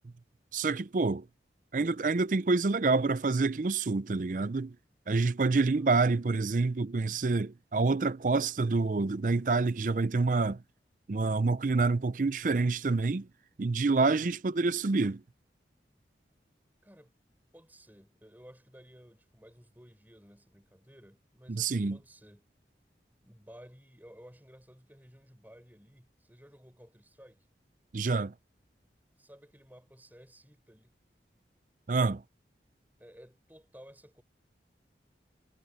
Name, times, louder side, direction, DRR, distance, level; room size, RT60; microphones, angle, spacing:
voice 1, 0.5-1.2 1.7-4.7 5.1-10.6 11.1-13.3 13.6-15.2 21.5-22.0 27.9-28.3 31.9-32.2, right 3 dB, 45° right, 0.5 m, -27 dB
voice 2, 16.8-17.1 17.5-22.5 23.2-27.5 29.2-30.9 33.0-34.2, equal, 10° right, 6.3 m, -55 dB
head